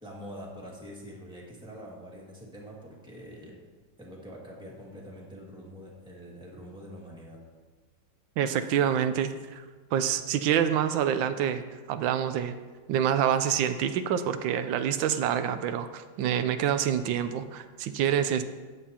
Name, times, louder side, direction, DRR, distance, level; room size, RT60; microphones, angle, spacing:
voice 1, 0.0-3.6 4.0-7.4, equal, 5° right, -4 dB, 1.8 m, -45 dB
voice 2, 8.4-9.6 9.9-12.6 12.9-18.4, right 9 dB, 85° right, 10 dB, 1.3 m, -27 dB
13.5 x 9.2 x 2.9 m, 1.4 s
omnidirectional pair, 2.0 m